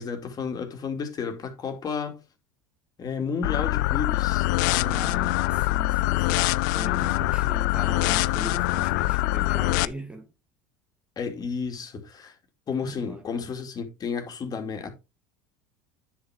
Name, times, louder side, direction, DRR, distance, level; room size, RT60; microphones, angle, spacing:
voice 1, 0.0-2.2 3.0-5.3 11.2-12.3 12.7-14.9, left 5 dB, 40° left, 2.6 m, -32 dB
sound 1, 3.4-9.8, left 18 dB, 75° left, 0.5 m, -24 dB
voice 2, 4.8-10.3 12.8-13.4, right 1 dB, 10° right, 1.3 m, -40 dB
10.0 x 6.2 x 3.6 m
hypercardioid pair, 90°, 10 cm